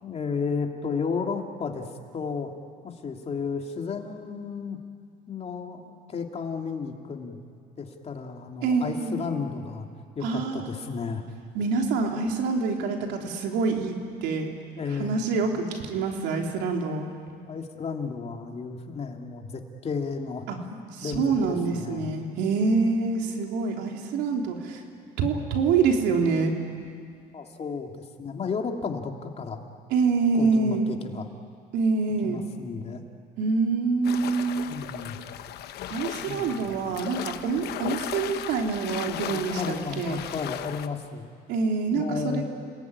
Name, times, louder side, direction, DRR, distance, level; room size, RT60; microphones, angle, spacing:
voice 1, 0.0-1.9 2.1-2.5 2.8-4.8 5.3-5.8 6.1-7.4 7.8-9.9 10.1-11.2 14.8-15.2 17.5-22.2 27.3-29.6 30.3-31.3 32.2-33.0 34.7-35.2 36.3-36.7 39.0-41.3 41.9-42.4, left 5 dB, 40° left, 3 dB, 2.9 m, -33 dB
voice 2, 8.6-9.2 10.2-10.7 11.5-14.5 15.0-17.1 20.5-20.6 20.9-24.8 25.2-26.5 29.9-30.9 31.7-32.4 33.4-34.7 35.9-40.2 41.5-42.4, right 4 dB, 90° right, 2 dB, 3.6 m, -26 dB
sound 1, 34.0-40.9, left 11 dB, 75° left, 1.1 m, -36 dB
29.5 x 20.0 x 9.8 m, 2.2 s
cardioid pair, 110°, 17 cm